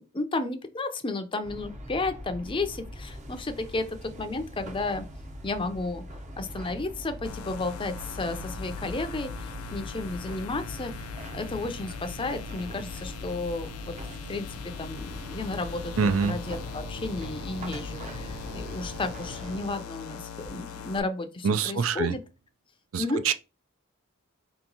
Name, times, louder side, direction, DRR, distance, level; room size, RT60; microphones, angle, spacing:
voice 1, 0.1-5.0 5.4-14.0 14.3-22.2 23.0-23.2, left 2 dB, 25° left, 0.5 m, -33 dB
sound 1, 1.4-19.7, equal, 35° right, 0.7 m, -41 dB
sound 2, 7.2-21.0, left 8 dB, 90° left, 0.5 m, -41 dB
voice 2, 16.0-16.4 21.4-22.2 22.9-23.3, right 6 dB, 70° right, 0.4 m, -25 dB
4.4 x 2.9 x 3.9 m
head